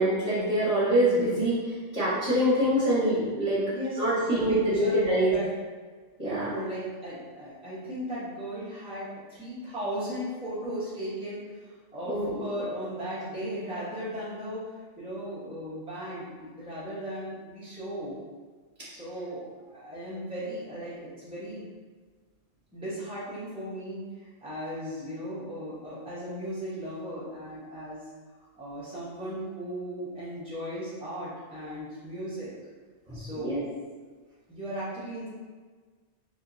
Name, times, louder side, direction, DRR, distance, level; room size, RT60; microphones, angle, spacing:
voice 1, 0.0-3.6 4.0-5.3 6.2-6.5 12.0-12.4 33.1-33.6, right 1 dB, 30° right, -10 dB, 1.3 m, -25 dB
voice 2, 3.7-5.4 6.2-14.6 15.0-18.2 18.9-21.7 22.7-28.0 28.6-32.5 33.1-33.8 34.5-35.3, equal, 5° right, -10 dB, 1.0 m, -37 dB
3.6 x 3.3 x 2.7 m, 1.4 s
omnidirectional pair, 1.3 m